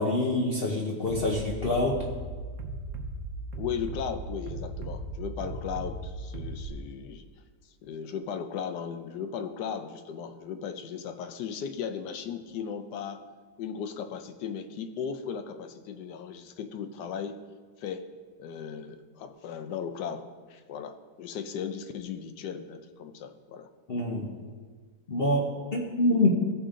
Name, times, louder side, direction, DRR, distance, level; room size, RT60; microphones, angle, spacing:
voice 1, 0.0-2.1 23.9-24.3 25.1-26.3, left 2 dB, 45° left, -2 dB, 0.8 m, -26 dB
Bass drum, 1.1-6.7, right 2 dB, 55° right, 1.1 m, -37 dB
voice 2, 3.5-7.3 7.8-13.2 13.6-17.4 17.8-18.1 18.4-23.7, left 7 dB, 80° left, 9 dB, 1.3 m, -36 dB
15.0 x 5.0 x 3.7 m, 1.5 s
omnidirectional pair, 1.8 m